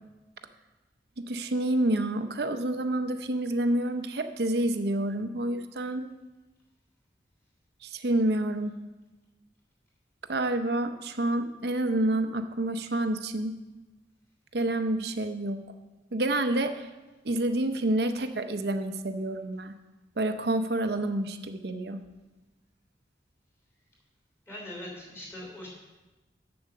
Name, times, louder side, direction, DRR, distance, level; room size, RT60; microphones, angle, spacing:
voice 1, 1.2-6.1 7.8-8.8 10.3-13.5 14.5-15.6 16.1-16.9 17.2-19.7 20.2-22.0, right 1 dB, 70° right, 8 dB, 0.7 m, -28 dB
voice 2, 24.5-25.7, left 1 dB, 15° left, -2 dB, 3.3 m, -41 dB
7.9 x 7.1 x 6.6 m, 1.1 s
head